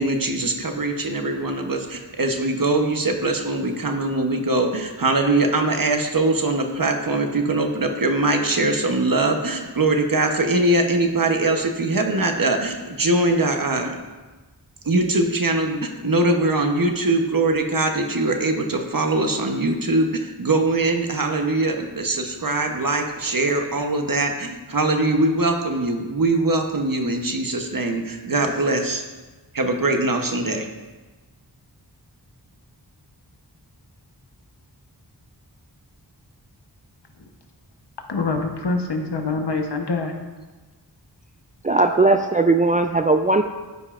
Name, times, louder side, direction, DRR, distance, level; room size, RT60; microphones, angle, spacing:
voice 1, 0.0-13.9 14.8-29.0 29.5-30.7, right 2 dB, 55° right, 4 dB, 0.9 m, -22 dB
voice 2, 38.1-40.1, left 3 dB, 75° left, 4 dB, 1.0 m, -25 dB
voice 3, 41.6-43.4, right 3 dB, 20° right, 6 dB, 0.3 m, -18 dB
13.0 x 5.4 x 2.5 m, 1.2 s
wide cardioid pair, 40°, 41 cm